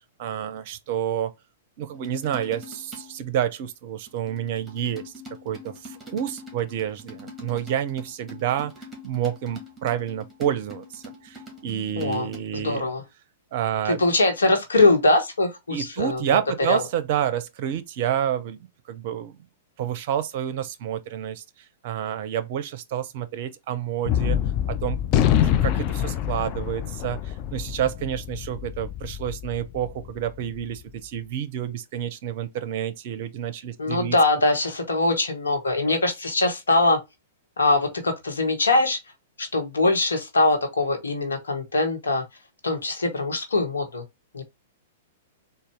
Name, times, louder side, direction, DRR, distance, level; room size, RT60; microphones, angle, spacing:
voice 1, 0.2-1.3 1.8-5.1 5.4-8.7 9.0-12.9 13.5-14.0 15.7-18.6 18.9-19.4 19.8-21.4 21.8-24.4 24.7-25.0 25.4-34.2 35.7-36.0, right 10 dB, 50° right, 0.5 m, -29 dB
sound 1, 1.9-3.2 4.1-12.4, left 2 dB, 10° right, 1.5 m, -44 dB
voice 2, 12.0-13.0 13.9-16.4 16.7-16.8 33.8-37.0 37.6-39.0 39.4-42.2 42.6-44.0 44.3-44.4, left 2 dB, 75° left, 1.1 m, -22 dB
Gunshot gunfire, 24.1-30.6, left 10 dB, 40° left, 0.4 m, -25 dB
4.0 x 2.2 x 3.3 m
figure-of-eight pair, 105°, 0 cm